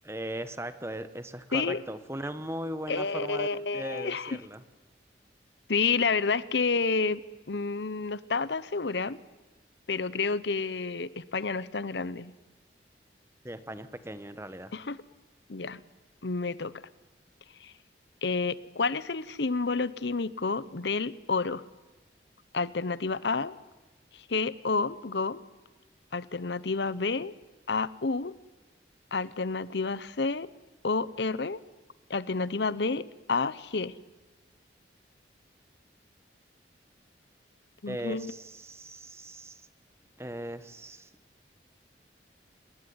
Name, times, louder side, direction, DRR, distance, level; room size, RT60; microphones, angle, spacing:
voice 1, 0.0-4.6 13.4-14.7 37.9-39.6 40.2-41.1, right 1 dB, 15° right, 11 dB, 1.4 m, -38 dB
voice 2, 2.9-4.4 5.7-7.2 7.5-9.2 9.9-12.3 14.7-15.0 15.5-15.8 16.2-16.7 17.6-17.7 18.2-21.6 22.5-23.5 24.1-25.4 26.1-27.3 27.7-28.3 29.1-30.5 30.8-31.6 32.1-33.9 37.8-38.3, left 4 dB, 70° left, 17 dB, 0.9 m, -29 dB
29.0 x 20.0 x 9.7 m, 1.1 s
head